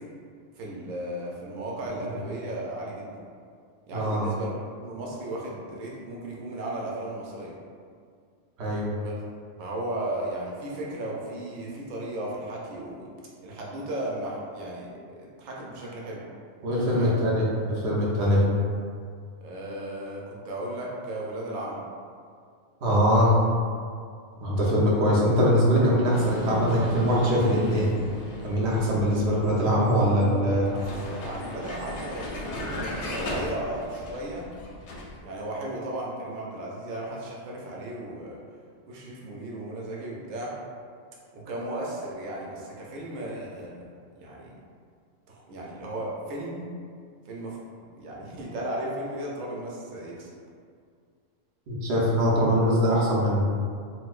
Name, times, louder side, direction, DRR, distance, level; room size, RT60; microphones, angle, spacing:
voice 1, 0.6-3.1 3.9-7.5 9.0-9.2 9.6-13.1 13.4-16.2 16.9-17.2 19.4-21.8 30.7-34.5 35.2-38.4 38.9-40.5 41.3-43.8 44.2-44.5 45.3-46.7 47.3-47.6 47.9-50.3, right 1 dB, 85° right, -3 dB, 1.0 m, -35 dB
voice 2, 3.9-4.3 8.6-8.9 16.6-18.4 22.8-23.3 24.4-27.9 28.4-30.7 51.7-53.4, equal, 60° right, -5 dB, 0.9 m, -22 dB
Vehicle, 26.1-35.2, left 1 dB, 65° left, 0.8 m, -37 dB
4.2 x 2.0 x 2.4 m, 2.1 s
omnidirectional pair, 1.3 m